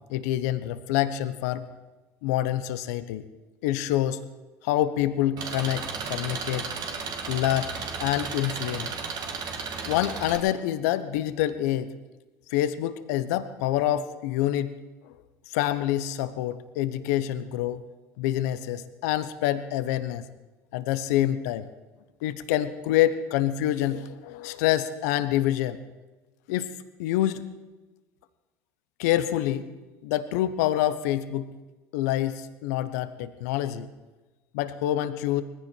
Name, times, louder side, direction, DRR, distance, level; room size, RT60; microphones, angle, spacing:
voice 1, 0.1-1.6 2.2-3.2 3.6-4.2 4.6-6.7 7.3-7.7 8.0-8.9 9.8-11.9 12.5-14.7 15.5-17.8 18.2-20.3 20.7-21.7 22.2-25.8 26.5-26.7 27.0-27.5 29.0-29.7 30.0-31.5 31.9-33.9 34.5-35.4, left 13 dB, 75° left, 12 dB, 1.0 m, -26 dB
Engine, 5.4-10.4, right 5 dB, 50° right, 2.6 m, -34 dB
19.5 x 15.0 x 4.6 m, 1.2 s
hypercardioid pair, 75°, 9 cm